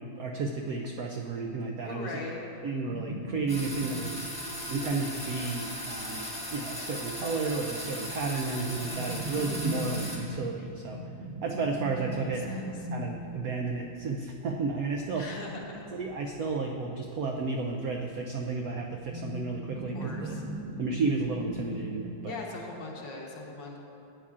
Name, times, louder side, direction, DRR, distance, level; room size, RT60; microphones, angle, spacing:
voice 1, 0.0-2.1 2.6-4.2 4.7-11.0 11.4-12.6 12.9-15.2 15.9-20.3 20.8-22.4, right 3 dB, 85° right, 1 dB, 0.7 m, -32 dB
voice 2, 1.8-2.4 12.2-12.7 15.1-15.8 19.7-20.4 22.2-23.8, left 3 dB, 70° left, -1 dB, 1.7 m, -40 dB
sound 1, 2.9-6.9 7.2-7.3 7.5-22.0, equal, 50° right, 1.5 m, -40 dB
sound 2, 3.5-10.2, equal, 5° left, 1.0 m, -38 dB
sound 3, 4.0-9.6, left 2 dB, 40° left, 1.0 m, -49 dB
12.5 x 8.4 x 2.4 m, 2.6 s
omnidirectional pair, 2.1 m